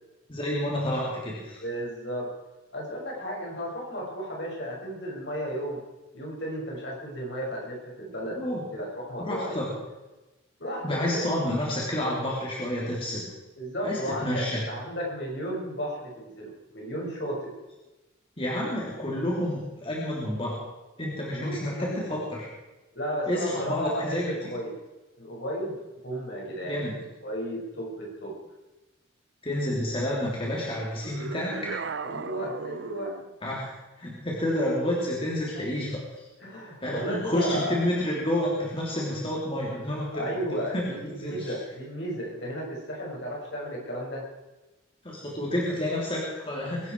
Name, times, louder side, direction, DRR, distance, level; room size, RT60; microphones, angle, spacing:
voice 1, 0.3-1.6 8.4-8.6 9.2-9.7 10.8-13.3 13.8-14.6 18.4-20.6 21.0-22.5 23.3-24.3 26.6-26.9 29.4-31.7 33.4-33.7 34.0-36.0 36.8-41.5 45.0-46.9, left 1 dB, 25° left, -4 dB, 3.4 m, -29 dB
voice 2, 1.6-2.3 2.7-5.8 6.1-9.6 10.6-11.3 13.6-17.5 21.3-22.0 22.9-24.7 25.2-26.9 27.2-28.3 32.0-33.1 35.5-35.8 36.4-37.8 40.1-44.3, equal, 60° left, -3 dB, 6.6 m, -34 dB
sound 1, 31.0-33.3, right 5 dB, 65° right, 0.6 m, -36 dB
23.0 x 12.5 x 4.8 m, 1.1 s
head